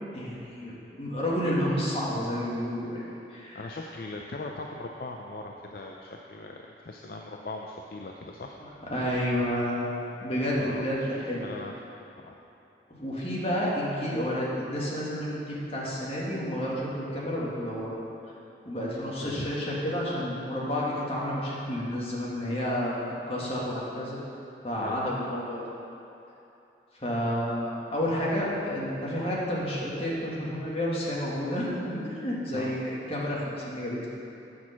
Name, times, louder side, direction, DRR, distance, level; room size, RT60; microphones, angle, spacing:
voice 1, 0.1-3.0 3.3-3.7 8.6-9.9 10.2-11.4 12.9-17.9 18.6-22.9 23.3-24.2 24.6-25.6 27.0-34.1, equal, 30° left, -6 dB, 1.7 m, -30 dB
voice 2, 3.5-8.6 10.6-10.8 11.4-11.7 12.2-12.3 19.2-19.5 24.8-25.0 32.5-32.8, left 2 dB, 55° left, 1 dB, 0.5 m, -39 dB
8.5 x 6.3 x 5.8 m, 2.9 s
head